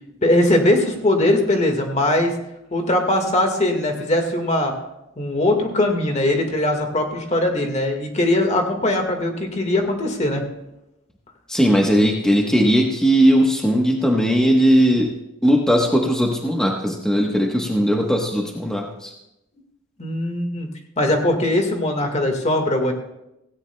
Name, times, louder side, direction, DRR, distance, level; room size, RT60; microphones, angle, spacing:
voice 1, 0.2-2.3 2.7-4.7 5.2-10.4 20.0-20.7 21.0-22.9, left 1 dB, 35° left, 4 dB, 1.7 m, -20 dB
voice 2, 11.5-15.1 15.4-19.1, equal, 5° left, 0 dB, 1.1 m, -18 dB
16.5 x 16.5 x 2.2 m, 0.89 s
head